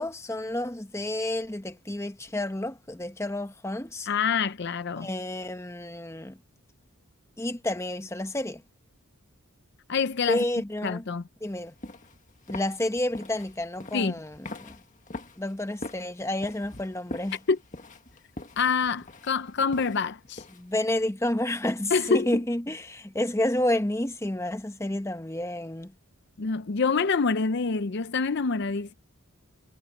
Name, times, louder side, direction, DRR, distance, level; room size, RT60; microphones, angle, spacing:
voice 1, 0.0-4.1 5.0-6.4 7.4-8.6 10.3-11.0 11.4-11.7 12.5-14.7 15.4-17.4 20.6-25.9, left 1 dB, 15° left, 1.0 m, -30 dB
voice 2, 4.1-5.1 9.9-10.4 10.8-11.2 13.9-14.2 17.5-17.6 18.6-20.4 21.9-22.4 26.4-28.9, left 5 dB, 50° left, 0.6 m, -26 dB
sound 1, 11.5-20.8, left 2 dB, 35° left, 1.8 m, -43 dB
head